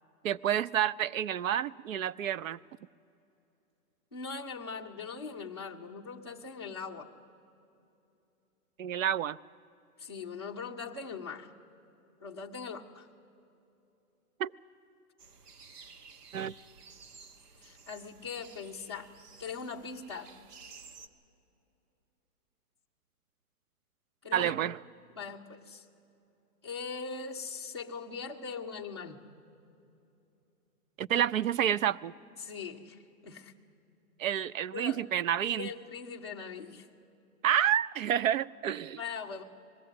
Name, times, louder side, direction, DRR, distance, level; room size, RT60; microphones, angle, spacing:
voice 1, 0.2-2.6 8.8-9.4 14.4-14.5 16.3-16.5 24.3-24.8 31.0-32.1 34.2-35.7 37.4-39.0, right 10 dB, 60° right, 19 dB, 0.5 m, -29 dB
voice 2, 4.1-7.1 10.0-11.5 12.2-13.1 17.6-19.1 19.4-20.3 24.2-24.6 25.1-25.9 26.6-29.2 32.4-33.5 34.7-35.1 35.6-36.9 39.0-39.4, left 5 dB, 20° left, -3 dB, 0.5 m, -41 dB
sound 1, 15.2-21.1, right 5 dB, 85° right, 1.4 m, -53 dB
20.5 x 15.0 x 9.4 m, 2.8 s
hypercardioid pair, 170°, 46 cm